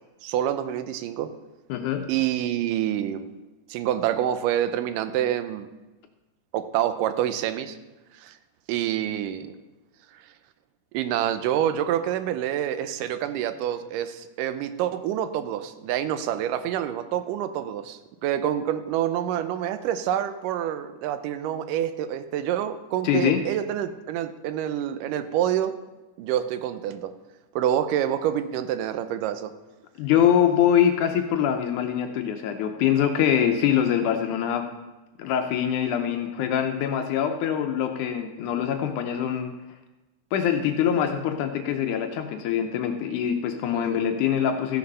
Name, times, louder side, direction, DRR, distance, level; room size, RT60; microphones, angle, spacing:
voice 1, 0.2-1.3 2.1-3.3 3.7-5.7 6.5-7.8 8.2-8.4 8.7-9.6 10.9-25.8 26.2-27.1 27.6-29.5 43.7-44.0, right 11 dB, 80° right, 11 dB, 2.2 m, -27 dB
voice 2, 1.7-2.1 23.0-23.4 30.0-34.7 35.2-39.5 40.3-44.8, left 9 dB, 75° left, 5 dB, 2.0 m, -24 dB
14.0 x 6.4 x 5.4 m, 1.1 s
omnidirectional pair, 3.9 m